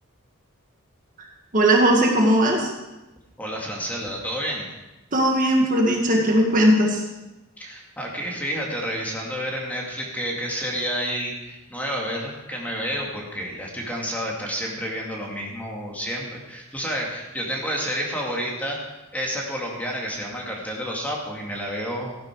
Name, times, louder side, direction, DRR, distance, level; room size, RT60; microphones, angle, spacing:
voice 1, 1.5-2.7 5.1-7.0, right 1 dB, 35° right, 0 dB, 1.8 m, -18 dB
voice 2, 3.4-4.7 7.6-18.8 19.1-22.1, equal, 5° left, -2 dB, 2.3 m, -30 dB
15.0 x 11.0 x 4.7 m, 1.0 s
head